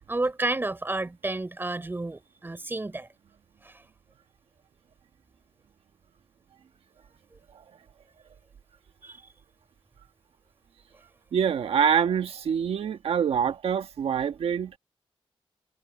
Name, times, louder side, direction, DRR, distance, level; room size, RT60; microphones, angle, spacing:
voice 1, 0.0-3.1 3.6-3.8 9.0-9.2, right 2 dB, 20° right, 3.7 m, -31 dB
voice 2, 11.3-14.8, right 7 dB, 85° right, 1.4 m, -25 dB
wide cardioid pair, 105°, 10 cm